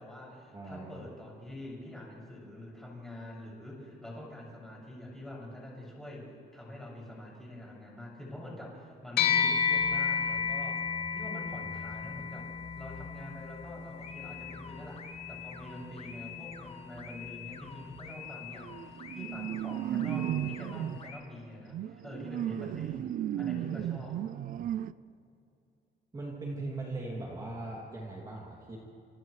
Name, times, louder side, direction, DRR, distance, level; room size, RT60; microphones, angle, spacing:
voice 1, 0.0-6.3 6.5-23.1 23.4-24.2, left 1 dB, ahead, -4 dB, 6.6 m, -45 dB
voice 2, 0.5-0.9 26.1-28.8, right 2 dB, 20° right, -4 dB, 2.6 m, -39 dB
sound 1, 9.2-18.8, left 7 dB, 65° left, 2.2 m, -33 dB
sound 2, 14.0-21.2, left 8 dB, 30° left, 1.2 m, -47 dB
sound 3, 18.1-18.3 18.6-21.0 21.7-24.9, right 11 dB, 50° right, 0.4 m, -35 dB
29.5 x 28.0 x 3.2 m, 2.5 s
cardioid pair, 170°, 19 cm